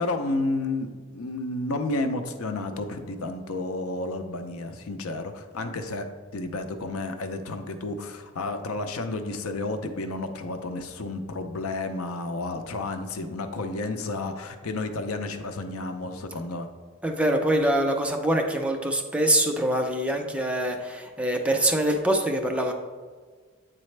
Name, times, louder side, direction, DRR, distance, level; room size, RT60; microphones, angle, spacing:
voice 1, 0.0-6.1 6.3-16.7, left 2 dB, 85° left, 7 dB, 0.6 m, -31 dB
voice 2, 17.0-22.7, right 1 dB, 5° right, 3 dB, 0.4 m, -24 dB
8.7 x 4.0 x 3.2 m, 1.5 s
head